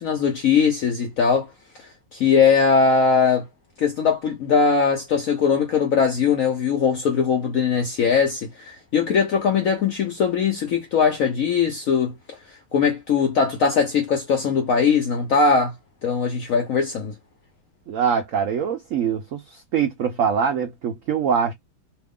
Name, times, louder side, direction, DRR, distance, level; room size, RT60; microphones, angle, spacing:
voice 1, 0.0-1.5 2.1-3.4 3.8-12.1 12.7-15.7 16.0-17.1, left 5 dB, 70° left, 0.8 m, -20 dB
voice 2, 17.9-19.4 19.7-21.5, right 7 dB, 85° right, 0.7 m, -23 dB
2.9 x 2.4 x 3.4 m
omnidirectional pair, 2.1 m